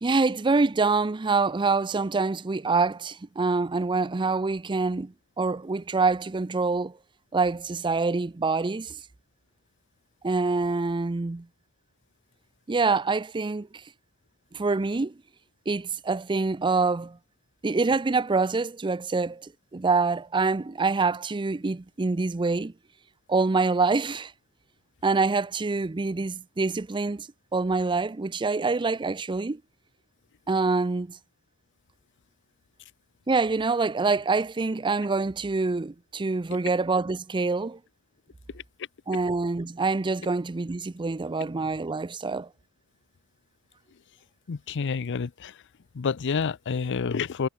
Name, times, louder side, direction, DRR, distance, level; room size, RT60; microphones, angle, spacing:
voice 1, 0.0-7.0 7.3-9.0 10.2-11.5 12.7-13.8 14.5-15.1 15.7-17.2 17.6-22.7 23.3-24.3 25.0-27.3 27.5-29.6 30.5-31.2 33.3-37.8 39.1-42.5, right 3 dB, 20° right, 0.5 m, -26 dB
voice 2, 44.5-45.5 45.9-47.5, left 5 dB, 55° left, 0.5 m, -28 dB
head